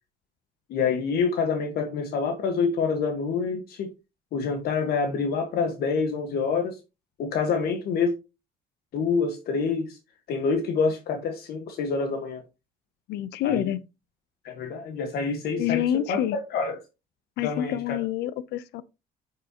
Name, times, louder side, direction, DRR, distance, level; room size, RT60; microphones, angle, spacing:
voice 1, 0.7-3.9 4.3-6.8 7.2-8.1 8.9-10.0 10.3-12.4 13.4-13.7 14.4-16.8 17.4-18.0, left 5 dB, 65° left, 1.5 m, -27 dB
voice 2, 13.1-13.8 15.6-16.4 17.4-18.8, left 11 dB, 85° left, 0.7 m, -27 dB
8.6 x 6.6 x 2.9 m
cardioid pair, 110°, 17 cm